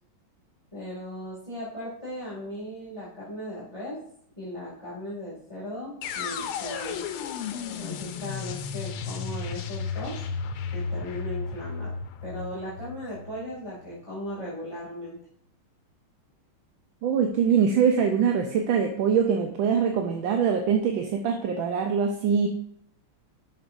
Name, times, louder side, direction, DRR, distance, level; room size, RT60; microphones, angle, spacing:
voice 1, 0.7-4.0 4.4-7.0 7.7-10.2 10.7-11.9 12.2-15.2, left 1 dB, 15° left, -8 dB, 2.2 m, -37 dB
sound 1, 6.0-14.0, left 5 dB, 90° left, 1.5 m, -34 dB
voice 2, 17.0-22.5, right 7 dB, 75° right, 4 dB, 1.4 m, -23 dB
12.0 x 5.9 x 2.6 m, 0.68 s
omnidirectional pair, 2.3 m